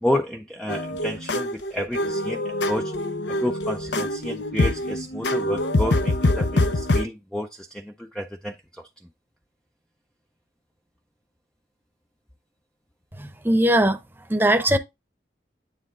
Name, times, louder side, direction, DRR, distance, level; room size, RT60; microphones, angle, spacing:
voice 1, 0.0-2.9 3.3-8.9, left 1 dB, 5° left, 0.4 m, -30 dB
sound 1, 0.7-7.0, left 1 dB, 85° left, 0.9 m, -24 dB
voice 2, 13.2-14.0 14.3-14.8, right 1 dB, 10° right, 0.8 m, -20 dB
9.4 x 3.4 x 3.6 m
head